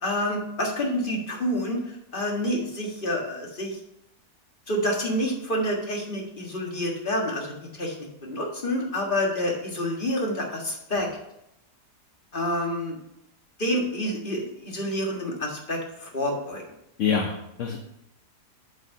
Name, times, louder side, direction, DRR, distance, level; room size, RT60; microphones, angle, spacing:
voice 1, 0.0-3.8 4.7-11.1 12.3-13.0 13.6-16.6, equal, 35° left, 0 dB, 1.8 m, -28 dB
voice 2, 17.0-17.8, left 6 dB, 60° left, 3 dB, 1.0 m, -26 dB
7.8 x 5.5 x 5.4 m, 0.83 s
omnidirectional pair, 1.7 m